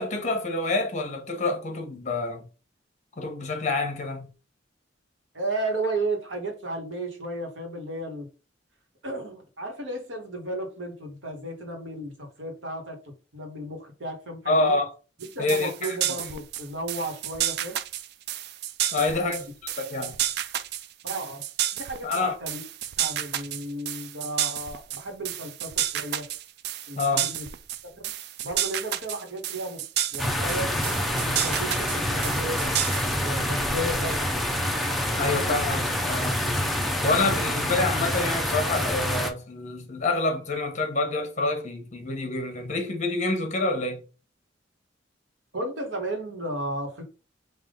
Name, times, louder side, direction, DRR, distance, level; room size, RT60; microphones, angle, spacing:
voice 1, 0.0-2.4 3.2-4.3 14.5-14.9 15.4-16.0 18.9-20.2 22.0-22.4 27.0-27.3 35.2-36.4 37.0-44.0, left 3 dB, 40° left, 1.0 m, -27 dB
voice 2, 5.3-8.3 9.0-14.7 15.2-17.8 19.0-19.4 21.0-21.5 21.7-22.6 23.0-26.3 26.9-27.5 27.8-28.0 28.4-29.8 30.1-30.7 31.3-34.5 45.5-47.0, right 1 dB, 80° right, 1.3 m, -34 dB
sound 1, 15.2-33.3, right 11 dB, 60° right, 0.3 m, -31 dB
sound 2, 30.2-39.3, left 1 dB, ahead, 0.5 m, -27 dB
3.6 x 2.5 x 3.7 m
head